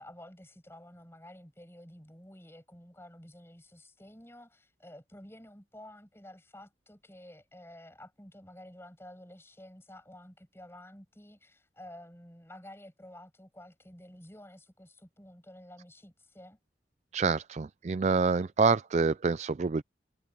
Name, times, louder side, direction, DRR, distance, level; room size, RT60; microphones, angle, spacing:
voice 1, 0.0-16.6, left 1 dB, 15° left, 7.3 m, -51 dB
voice 2, 17.1-19.8, right 4 dB, 40° right, 0.4 m, -27 dB
head